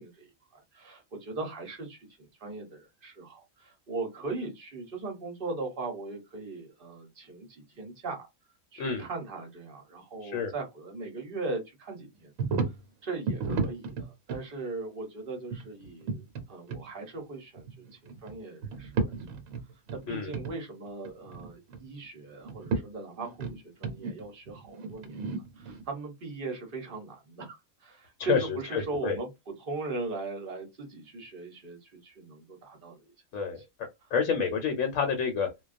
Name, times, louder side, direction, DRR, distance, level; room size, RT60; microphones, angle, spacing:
voice 1, 0.0-8.3 8.7-12.6 13.0-19.1 19.9-33.1 33.6-33.7 34.0-34.1, right 3 dB, 45° right, 0.9 m, -39 dB
sound 1, 12.4-12.8 13.3-14.4 15.5-16.4 16.7-16.8 17.6-18.4 18.6-20.0 20.3-20.5 20.9-21.9 22.4-22.8 23.2-25.8, right 4 dB, 75° right, 1.1 m, -33 dB
voice 2, 28.7-29.2 33.3-33.6 34.1-35.5, left 6 dB, 70° left, 0.9 m, -28 dB
2.3 x 2.2 x 2.4 m
omnidirectional pair, 1.5 m